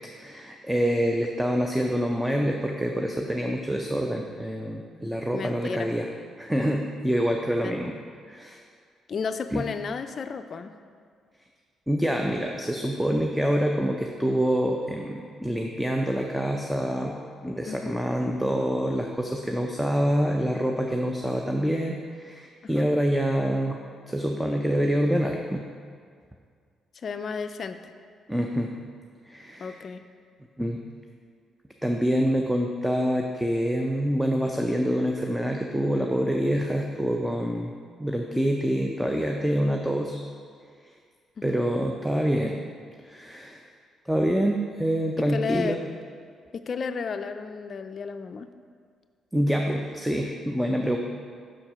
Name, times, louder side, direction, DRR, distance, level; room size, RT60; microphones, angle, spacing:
voice 1, 0.1-6.1 6.4-7.9 8.3-8.6 9.5-9.6 11.9-17.2 17.4-23.8 24.1-25.7 28.3-28.7 29.3-29.8 30.6-30.8 31.8-37.7 38.0-40.2 41.4-42.6 43.0-43.6 44.1-45.8 49.3-51.0, equal, 5° right, 2 dB, 0.5 m, -26 dB
voice 2, 5.3-5.9 7.6-7.8 9.1-10.7 17.7-18.0 22.6-22.9 27.0-27.8 29.6-30.0 41.4-41.6 45.2-45.8 46.5-48.5, left 5 dB, 50° left, 8 dB, 0.3 m, -33 dB
6.2 x 4.4 x 4.9 m, 2.1 s
supercardioid pair, 65°, 0 cm